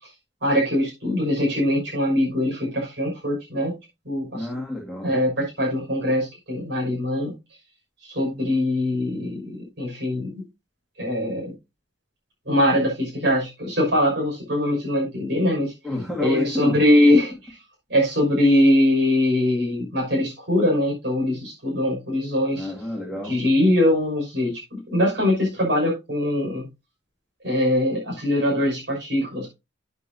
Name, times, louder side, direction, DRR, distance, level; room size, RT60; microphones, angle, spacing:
voice 1, 0.4-3.7 4.0-4.5 5.0-7.3 8.0-10.4 11.0-11.5 12.4-15.7 16.2-17.6 17.9-22.7 23.2-26.6 27.4-29.5, left 1 dB, 60° right, -2 dB, 6.1 m, -22 dB
voice 2, 4.3-5.1 15.8-16.8 22.5-23.4, left 2 dB, ahead, -3 dB, 2.3 m, -29 dB
12.0 x 8.4 x 2.8 m, 0.26 s
head